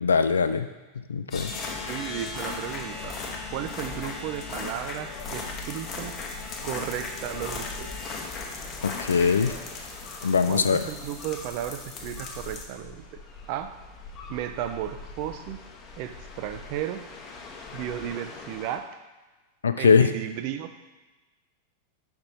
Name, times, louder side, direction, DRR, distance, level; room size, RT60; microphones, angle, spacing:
voice 1, 0.0-0.7 1.1-1.5 8.8-9.5 10.2-10.8 19.6-20.1, left 5 dB, 70° left, 10 dB, 0.3 m, -21 dB
sound 1, 1.3-18.8, left 4 dB, 30° left, 0.8 m, -38 dB
voice 2, 1.9-3.2 3.5-6.2 6.6-7.9 10.4-13.2 13.5-13.7 14.3-15.6 16.0-17.0 17.7-18.9 19.8-20.9, right 11 dB, 45° right, 9 dB, 0.4 m, -34 dB
5.4 x 4.3 x 4.0 m, 1.2 s
figure-of-eight pair, 90°, 0 cm